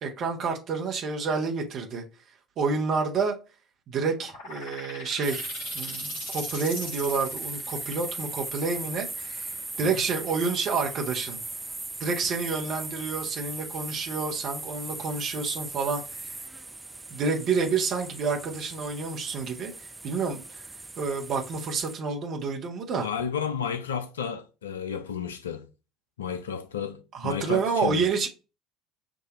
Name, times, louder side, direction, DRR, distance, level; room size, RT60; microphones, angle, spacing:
voice 1, 0.0-2.0 2.6-3.4 3.9-5.5 5.7-11.4 12.0-16.4 17.1-19.7 20.0-20.6 21.0-23.1 27.1-28.3, right 4 dB, 45° right, 1.2 m, -29 dB
sound 1, 4.2-11.5, left 3 dB, 55° left, 1.2 m, -44 dB
sound 2, 5.2-22.0, right 2 dB, 15° right, 0.5 m, -38 dB
voice 2, 23.0-25.7 26.2-28.1, left 7 dB, 75° left, 0.5 m, -32 dB
6.2 x 2.7 x 3.0 m
figure-of-eight pair, 65°, 0 cm